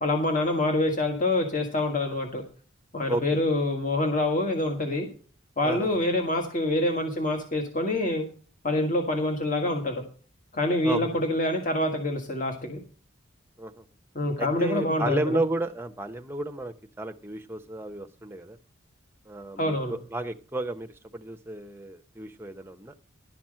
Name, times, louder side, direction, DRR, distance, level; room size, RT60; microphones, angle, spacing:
voice 1, 0.0-2.4 2.9-5.1 5.6-8.2 8.6-10.0 10.5-12.8 14.1-15.4 19.6-19.9, left 1 dB, 40° left, 3 dB, 1.6 m, -26 dB
voice 2, 3.1-3.4 5.6-5.9 10.8-11.0 13.6-13.8 14.4-18.6 19.3-22.9, right 1 dB, 10° right, 7 dB, 0.7 m, -32 dB
11.5 x 5.9 x 7.5 m, 0.39 s
head